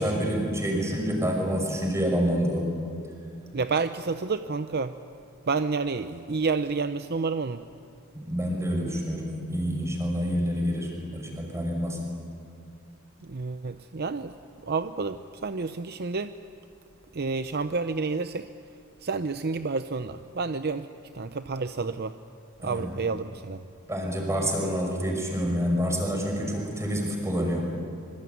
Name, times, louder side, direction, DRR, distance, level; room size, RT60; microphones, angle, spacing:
voice 1, 0.0-2.7 8.1-12.0 22.6-22.9 23.9-27.6, equal, 15° right, 1 dB, 5.9 m, -27 dB
voice 2, 3.5-5.0 5.5-7.6 13.2-14.3 14.6-16.3 17.1-18.5 19.0-20.9 21.1-22.1 22.6-23.6, right 4 dB, 50° right, 10 dB, 0.7 m, -29 dB
25.5 x 24.5 x 9.5 m, 2.6 s
head